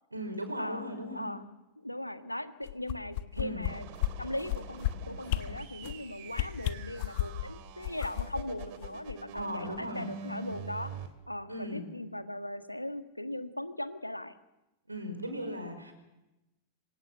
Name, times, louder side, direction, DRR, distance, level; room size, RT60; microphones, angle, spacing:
voice 1, 0.1-1.3 3.4-3.7 9.3-10.1 11.5-11.9 14.9-15.9, equal, 85° right, 8 dB, 5.2 m, -37 dB
voice 2, 1.1-1.5 1.8-3.9 4.2-10.9 11.3-14.3, left 1 dB, 85° left, 9 dB, 1.6 m, -39 dB
sound 1, 2.6-3.7 4.0-4.1 4.4-4.9 5.3-5.4 5.8-6.0 6.3-7.4 7.8-9.4 9.8-9.9, left 16 dB, 50° left, 1.3 m, -32 dB
sound 2, 3.7-11.1, right 6 dB, 50° right, 3.2 m, -46 dB
27.0 x 25.0 x 6.9 m, 0.97 s
figure-of-eight pair, 90°, 0 cm